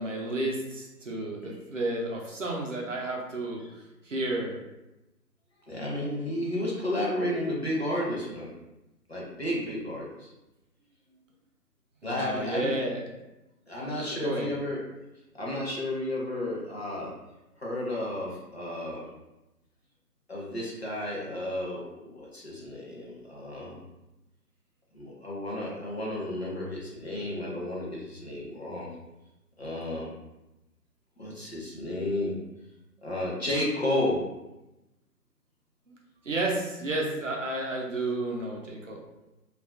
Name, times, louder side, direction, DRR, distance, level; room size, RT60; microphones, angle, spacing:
voice 1, 0.0-4.6 12.0-13.0 13.9-14.5 36.2-39.0, right 2 dB, 50° right, -2 dB, 0.5 m, -32 dB
voice 2, 5.7-8.5 9.1-10.3 12.0-12.7 13.7-14.8 15.3-17.1 17.6-19.0 20.3-23.8 24.9-28.9 29.6-30.1 31.2-32.3 33.0-34.2, left 1 dB, 40° left, -5 dB, 0.5 m, -32 dB
2.4 x 2.3 x 2.4 m, 0.97 s
figure-of-eight pair, 150°, 48 cm